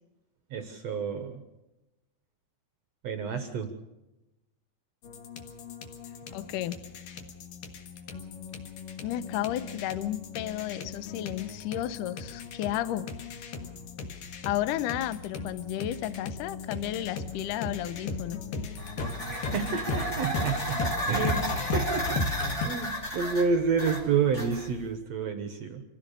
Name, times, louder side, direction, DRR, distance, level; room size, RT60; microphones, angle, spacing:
voice 1, 0.5-1.4 3.0-3.7 19.3-22.1 22.6-25.8, right 5 dB, 70° right, 7 dB, 1.6 m, -29 dB
sound 1, 5.0-22.7, left 3 dB, 60° left, 2.9 m, -36 dB
voice 2, 6.3-6.8 9.0-13.1 14.4-18.4, left 12 dB, 85° left, 15 dB, 1.8 m, -32 dB
sound 2, 18.7-24.9, right 1 dB, 20° left, 2.7 m, -33 dB
26.0 x 15.0 x 6.7 m, 1.0 s
omnidirectional pair, 4.8 m